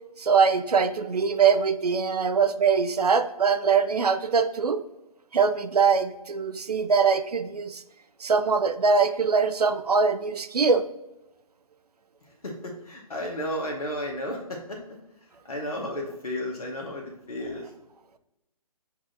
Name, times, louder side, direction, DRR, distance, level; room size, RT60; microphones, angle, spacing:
voice 1, 0.2-4.8 5.3-7.8 8.2-10.8, right 5 dB, 80° right, 10 dB, 0.4 m, -22 dB
voice 2, 12.4-14.8 15.5-17.7, left 1 dB, 70° left, 0 dB, 0.9 m, -33 dB
7.1 x 2.4 x 2.6 m, 0.92 s
figure-of-eight pair, 140°, 20 cm